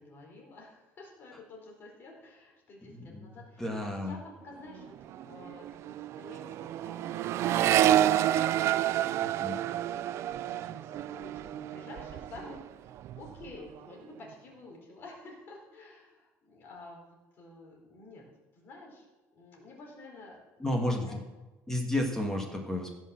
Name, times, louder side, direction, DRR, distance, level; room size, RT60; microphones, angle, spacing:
voice 1, 0.0-12.9 13.1-18.2 18.5-19.1 19.3-20.7 21.0-21.2, left 2 dB, 35° left, -1 dB, 4.2 m, -50 dB
voice 2, 2.9-4.2 9.2-9.6 20.6-21.2 21.7-22.9, left 1 dB, 5° left, 2 dB, 1.5 m, -32 dB
Accelerating revving vroom, 4.6-4.8 5.1-12.6 12.9-13.6, right 12 dB, 45° right, 0.4 m, -29 dB
16.0 x 6.4 x 7.6 m, 1.2 s
cardioid pair, 180°, 6 cm